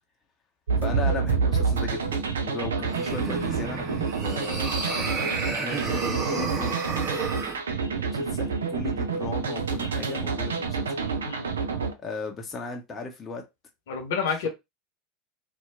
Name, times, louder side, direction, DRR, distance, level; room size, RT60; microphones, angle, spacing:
sound 1, 0.7-11.9, right 5 dB, 75° right, 0.4 m, -28 dB
voice 1, 0.8-6.8 8.0-10.9 12.0-13.4, left 3 dB, 25° left, 0.7 m, -36 dB
sound 2, 2.8-7.6, right 5 dB, 30° right, 1.1 m, -32 dB
voice 2, 11.2-11.6 13.9-14.5, left 6 dB, 65° left, 0.8 m, -29 dB
2.7 x 2.2 x 2.4 m
figure-of-eight pair, 80°, 0 cm